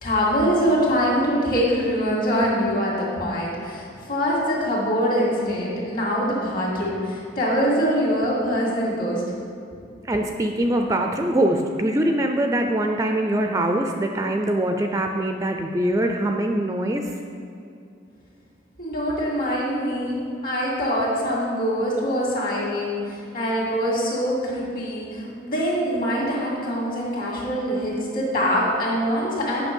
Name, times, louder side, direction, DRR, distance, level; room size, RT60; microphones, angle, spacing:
voice 1, 0.0-9.2 18.8-29.7, equal, 50° left, -4 dB, 2.2 m, -24 dB
voice 2, 10.0-17.0, right 1 dB, 15° right, 4 dB, 0.4 m, -23 dB
8.9 x 5.8 x 5.3 m, 2.5 s
head